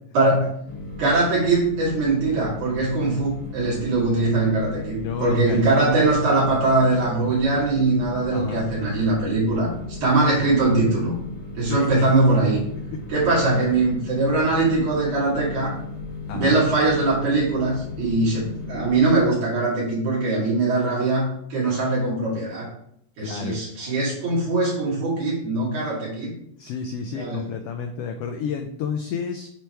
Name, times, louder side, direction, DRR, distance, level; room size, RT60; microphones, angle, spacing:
voice 1, 0.1-0.5 1.0-9.7 10.0-11.1 11.6-12.6 13.1-15.7 16.3-22.7 23.2-26.3 27.1-27.4, right 2 dB, 80° right, -7 dB, 4.0 m, -21 dB
sound 1, 0.7-19.2, left 3 dB, 40° left, 1.7 m, -36 dB
voice 2, 5.0-5.7 8.3-8.6 11.6-12.1 16.3-16.6 23.2-23.6 26.6-29.5, left 6 dB, 80° left, 5 dB, 1.4 m, -30 dB
8.8 x 3.4 x 4.5 m, 0.70 s
omnidirectional pair, 3.4 m